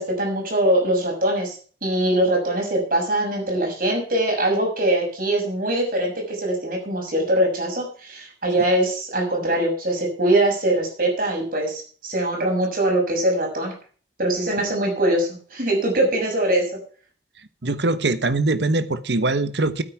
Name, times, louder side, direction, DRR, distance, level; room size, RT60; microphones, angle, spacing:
voice 1, 0.0-1.5 1.8-13.7 14.2-16.7, right 1 dB, 55° right, 1 dB, 6.5 m, -22 dB
voice 2, 17.6-19.8, right 2 dB, 80° right, 12 dB, 1.1 m, -22 dB
13.0 x 9.5 x 5.8 m, 0.42 s
head